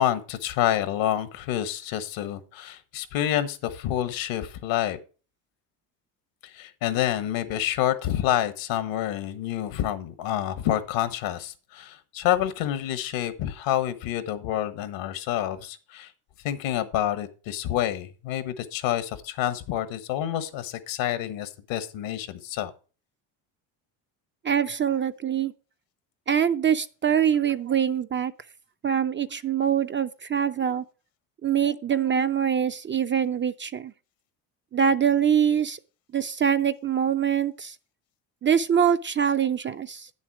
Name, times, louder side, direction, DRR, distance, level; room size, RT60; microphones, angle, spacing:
voice 1, 0.0-5.0 6.4-16.1 16.4-22.7, left 12 dB, 70° left, 1.4 m, -28 dB
voice 2, 24.4-25.5 26.3-28.3 28.8-30.8 31.4-33.9 34.7-35.8 36.1-37.8 38.4-40.1, right 8 dB, 25° right, 0.5 m, -24 dB
9.4 x 7.3 x 4.7 m
hypercardioid pair, 75°, 48 cm